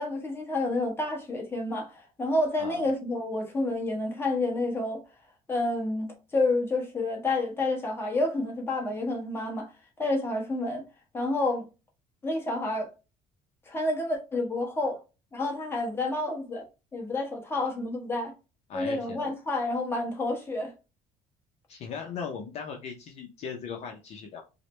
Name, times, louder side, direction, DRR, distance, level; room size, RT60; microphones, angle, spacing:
voice 1, 0.0-5.0 5.5-9.7 10.0-10.8 11.1-11.6 12.2-12.9 13.7-15.0 15.3-16.6 16.9-18.3 18.7-20.7, left 2 dB, 15° left, 1.1 m, -29 dB
voice 2, 18.7-19.3 21.7-24.4, left 6 dB, 50° left, 0.6 m, -38 dB
4.8 x 2.1 x 3.0 m
cardioid pair, 155°, 14 cm